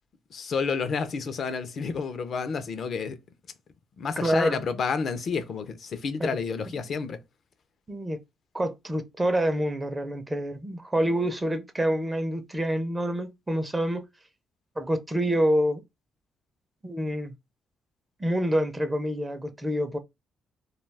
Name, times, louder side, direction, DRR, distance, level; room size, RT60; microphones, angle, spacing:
voice 1, 0.3-3.2 4.0-7.2, left 5 dB, 55° left, 0.5 m, -30 dB
voice 2, 4.2-4.6 6.2-6.3 7.9-8.2 8.5-14.0 14.8-15.8 16.8-17.4 18.2-20.0, right 1 dB, 15° right, 0.5 m, -27 dB
2.3 x 2.3 x 3.2 m
cardioid pair, 90°, 0 cm